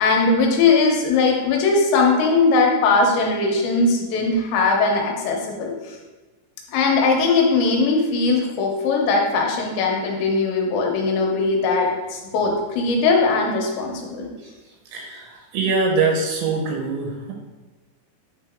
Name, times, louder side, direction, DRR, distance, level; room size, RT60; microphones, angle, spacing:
voice 1, 0.0-6.0 6.7-14.3, left 3 dB, 80° left, 0 dB, 3.1 m, -20 dB
voice 2, 14.9-17.3, right 4 dB, 85° right, 0 dB, 3.4 m, -23 dB
9.2 x 3.9 x 3.6 m, 1.2 s
omnidirectional pair, 5.2 m